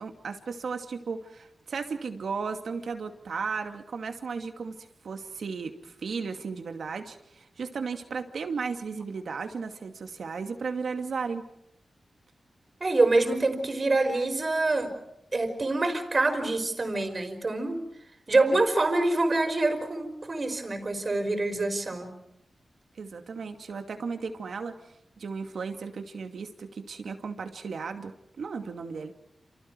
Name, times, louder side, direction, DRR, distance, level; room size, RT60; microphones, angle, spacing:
voice 1, 0.0-4.8 5.0-11.5 23.0-29.1, right 5 dB, 80° right, 6 dB, 2.5 m, -35 dB
voice 2, 12.8-14.9 15.3-17.8 18.3-22.1, right 2 dB, 40° right, 6 dB, 5.0 m, -26 dB
29.0 x 28.5 x 4.8 m, 0.84 s
wide cardioid pair, 85°, 0 cm